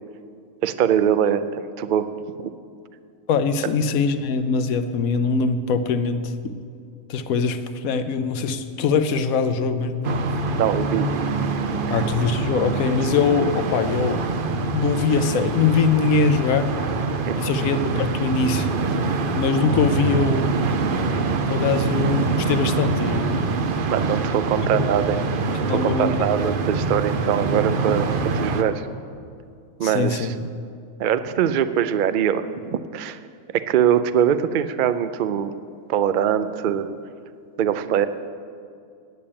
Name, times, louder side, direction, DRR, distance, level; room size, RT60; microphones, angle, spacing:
voice 1, 0.6-2.1 2.4-2.5 10.6-11.1 11.9-12.0 17.3-17.4 23.9-25.4 25.7-28.1 28.3-28.9 29.8-30.3 31.0-33.2 33.5-35.5 35.9-36.9 37.6-38.1, right 9 dB, 90° right, 12 dB, 0.4 m, -22 dB
voice 2, 3.3-6.3 7.1-10.2 11.9-14.2 14.7-16.7 17.4-18.7 19.3-20.5 21.5-23.4 24.7-24.9 25.7-26.1 29.8-30.3, left 5 dB, 80° left, 10 dB, 1.1 m, -22 dB
sound 1, 10.0-28.6, right 3 dB, 50° right, 0.7 m, -24 dB
9.5 x 8.5 x 8.7 m, 2.4 s
omnidirectional pair, 1.5 m